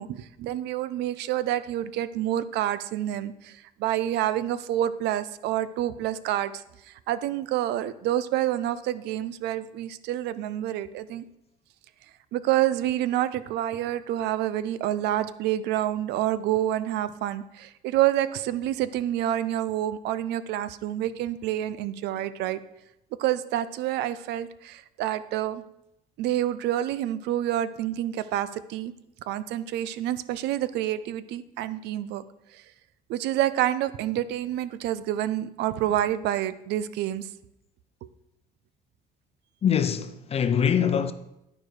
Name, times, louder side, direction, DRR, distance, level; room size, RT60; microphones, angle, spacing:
voice 1, 0.0-6.5 6.9-11.2 12.3-22.6 23.2-25.6 26.2-28.9 29.3-32.2 33.1-37.3, right 12 dB, 80° right, 0.5 m, -28 dB
voice 2, 39.6-41.1, left 8 dB, 35° left, 0.6 m, -23 dB
11.5 x 4.8 x 4.8 m
cardioid pair, 110°, 17 cm